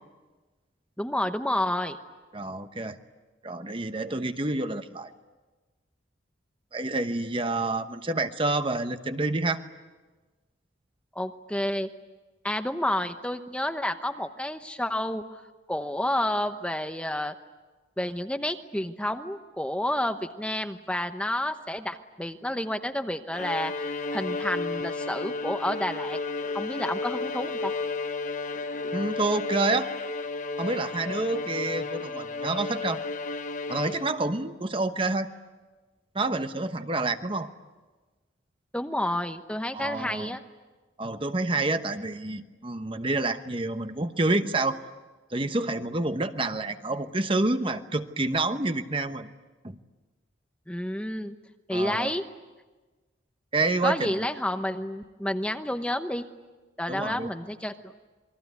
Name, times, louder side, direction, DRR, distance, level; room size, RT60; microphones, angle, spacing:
voice 1, 1.0-2.0 11.1-11.9 12.4-15.2 15.7-17.3 18.0-23.8 24.1-26.2 26.5-27.7 38.7-40.4 50.7-51.3 51.7-52.2 53.8-56.2 56.8-57.9, left 1 dB, 5° left, 7 dB, 0.9 m, -30 dB
voice 2, 2.3-3.0 3.4-5.1 6.7-9.6 28.9-29.9 30.6-33.0 33.7-35.3 36.1-37.5 39.7-40.4 41.0-44.8 45.3-49.3 49.6-49.8 51.7-52.1 53.5-54.3 56.9-57.3, right 2 dB, 25° right, 9 dB, 1.0 m, -28 dB
Bowed string instrument, 23.3-34.4, left 3 dB, 40° left, 1.0 m, -33 dB
27.5 x 22.0 x 9.5 m, 1.3 s
head